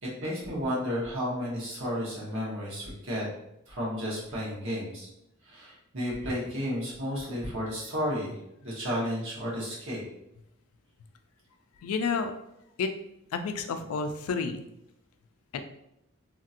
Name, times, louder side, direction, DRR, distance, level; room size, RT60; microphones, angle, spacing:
voice 1, 0.0-3.3 3.7-5.1 5.4-10.0, equal, 65° right, -5 dB, 1.2 m, -32 dB
voice 2, 11.8-12.3 12.8-12.9 13.3-14.6 15.5-15.6, left 5 dB, 90° left, 7 dB, 0.4 m, -30 dB
2.8 x 2.8 x 2.4 m, 0.83 s
head